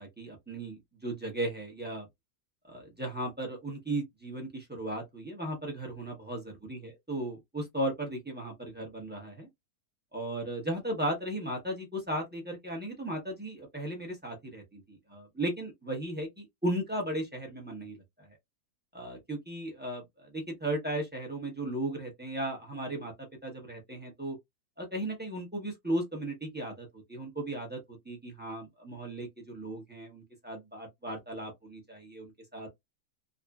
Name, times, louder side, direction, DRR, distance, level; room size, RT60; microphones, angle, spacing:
voice 1, 0.0-2.1 2.7-6.4 6.7-9.5 10.1-18.3 18.9-24.4 24.8-32.7, right 1 dB, 10° right, 0.5 m, -36 dB
2.7 x 2.6 x 2.3 m
omnidirectional pair, 1.8 m